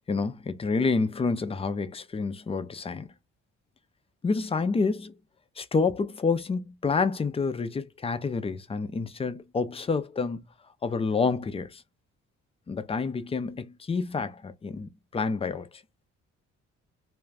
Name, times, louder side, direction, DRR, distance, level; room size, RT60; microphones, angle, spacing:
voice 1, 0.1-3.1 4.2-5.1 5.6-10.5 10.8-11.8 12.7-15.7, left 4 dB, 20° left, 0.4 m, -28 dB
2.5 x 2.3 x 3.2 m
cardioid pair, 90°, 30 cm